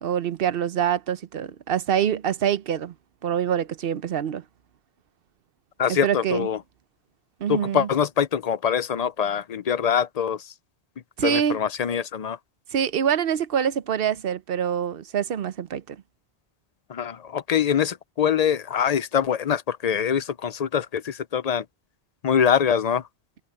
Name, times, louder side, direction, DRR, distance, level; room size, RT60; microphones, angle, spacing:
voice 1, 0.0-2.9 3.2-4.4 5.9-6.5 7.4-7.9 11.2-11.6 12.7-16.0, right 8 dB, 65° right, 0.9 m, -25 dB
voice 2, 5.8-6.6 7.5-10.5 11.2-12.4 16.9-21.6 22.2-23.0, left 8 dB, 45° left, 0.6 m, -24 dB
omnidirectional pair, 1.0 m